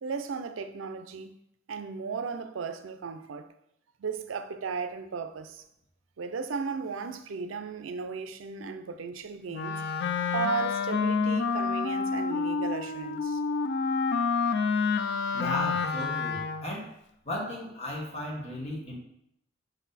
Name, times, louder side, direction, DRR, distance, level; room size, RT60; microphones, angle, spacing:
voice 1, 0.0-1.4 1.7-3.5 4.0-5.6 6.2-9.8 10.3-13.4, right 5 dB, 80° right, 0.5 m, -35 dB
Wind instrument woodwind instrument, 9.5-16.8, left 5 dB, 60° left, 0.4 m, -28 dB
voice 2, 15.3-16.9 17.2-19.0, left 1 dB, 35° left, 1.4 m, -35 dB
5.9 x 4.1 x 4.1 m
head